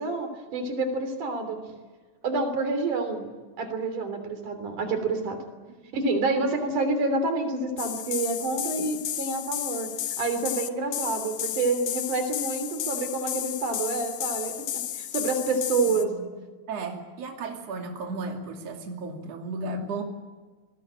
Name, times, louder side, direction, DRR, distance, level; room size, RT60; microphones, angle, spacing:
voice 1, 0.0-1.6 2.2-3.2 3.6-5.4 5.9-9.9 10.2-14.5 15.0-16.1, right 3 dB, 80° right, 7 dB, 4.7 m, -28 dB
sound 1, 7.8-16.0, left 12 dB, 80° left, 2.5 m, -33 dB
voice 2, 16.7-20.0, right 3 dB, 55° right, 2 dB, 3.6 m, -34 dB
25.0 x 20.5 x 8.9 m, 1.4 s
omnidirectional pair, 3.5 m